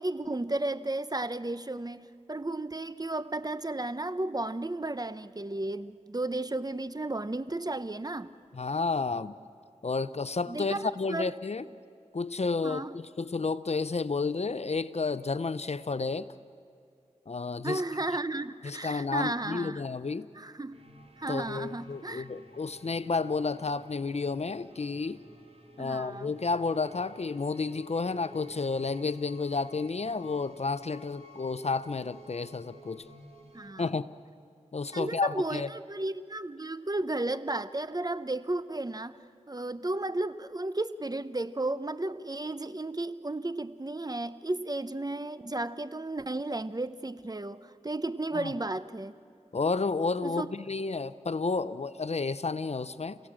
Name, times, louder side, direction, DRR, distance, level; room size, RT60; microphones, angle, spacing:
voice 1, 0.0-8.3 10.5-11.3 12.6-12.9 17.6-19.8 20.3-20.7 21.2-22.2 25.8-26.3 33.5-33.8 34.9-39.2 39.5-49.1 50.2-50.5, right 2 dB, 30° right, 14 dB, 0.8 m, -33 dB
voice 2, 8.5-9.3 9.8-11.6 12.1-16.3 17.3-17.8 18.6-20.3 21.3-25.2 25.8-33.0 33.8-34.1 34.7-35.7 48.3-48.5 49.5-53.2, left 4 dB, 55° left, 15 dB, 0.7 m, -31 dB
sound 1, 20.7-33.7, equal, 50° right, 2.6 m, -53 dB
28.5 x 17.0 x 7.5 m, 2.4 s
cardioid pair, 40°, 13 cm